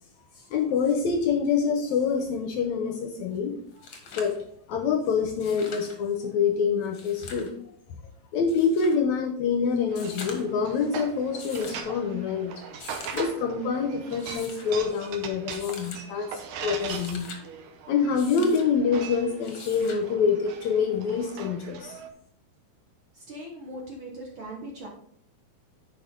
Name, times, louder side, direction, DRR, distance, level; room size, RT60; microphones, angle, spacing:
voice 1, 0.5-3.5 4.1-4.4 4.7-7.5 8.3-12.5 13.1-17.3 17.9-21.9, left 5 dB, 75° left, 5 dB, 1.8 m, -26 dB
sound 1, 3.3-3.4 3.7-4.4 5.3-6.0 6.8-7.5 8.5-9.0 9.9-10.6 11.4-11.9 12.7-13.3 14.1-14.7 15.5-16.0 16.6-17.4 18.2-18.7 19.4-20.0 21.5-21.6, left 4 dB, 55° left, 1.5 m, -43 dB
sound 2, 9.9-22.1, right 7 dB, 75° right, 2.3 m, -41 dB
voice 2, 23.1-24.9, right 1 dB, 55° right, -1 dB, 1.5 m, -40 dB
9.4 x 5.4 x 3.7 m, 0.65 s
omnidirectional pair, 3.9 m